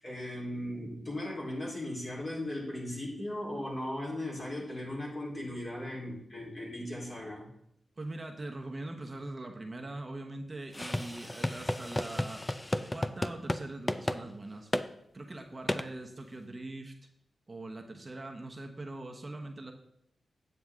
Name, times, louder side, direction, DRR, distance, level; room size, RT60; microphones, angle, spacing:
voice 1, 0.0-7.5, left 1 dB, 40° left, -4 dB, 3.6 m, -37 dB
voice 2, 8.0-12.4 12.9-14.7 15.1-16.9 17.5-19.7, right 2 dB, 30° right, 2 dB, 1.0 m, -42 dB
sound 1, 10.7-13.6 13.9-14.2 14.7-14.9 15.7-15.9, left 1 dB, 20° left, 0.5 m, -32 dB
9.1 x 7.8 x 3.6 m, 0.76 s
cardioid pair, 75°, 0 cm